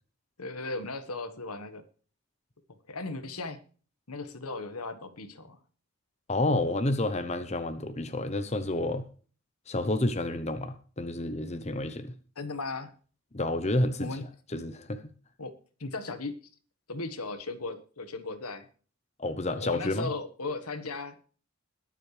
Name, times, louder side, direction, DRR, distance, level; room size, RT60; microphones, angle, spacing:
voice 1, 0.4-1.8 2.9-3.6 4.1-5.6 12.4-12.9 14.0-14.2 15.4-15.5 15.8-16.3 16.9-18.7 19.5-21.2, left 3 dB, 85° left, 1.5 m, -37 dB
voice 2, 6.3-9.0 9.7-12.1 13.3-14.2 14.5-15.0 19.2-20.1, left 2 dB, 30° left, 0.9 m, -29 dB
21.5 x 7.6 x 3.4 m
head